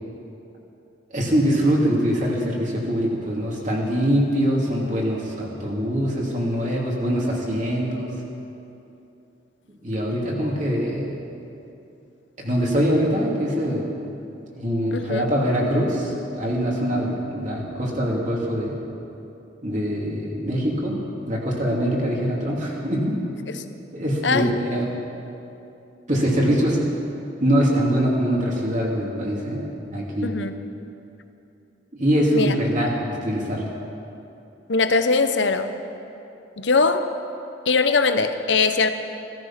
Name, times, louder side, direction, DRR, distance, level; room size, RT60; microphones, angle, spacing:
voice 1, 1.1-8.1 9.8-11.2 12.4-13.9 14.4-18.8 19.6-21.0 21.3-23.2 23.9-24.9 26.1-26.8 27.4-30.4 31.9-33.6, equal, 40° right, -3 dB, 2.8 m, -23 dB
voice 2, 14.9-15.3 24.2-24.5 30.2-30.6 32.3-32.5 34.7-35.7 36.6-37.1 37.7-38.9, left 4 dB, 75° left, 9 dB, 0.9 m, -21 dB
17.0 x 13.5 x 5.8 m, 2.8 s
head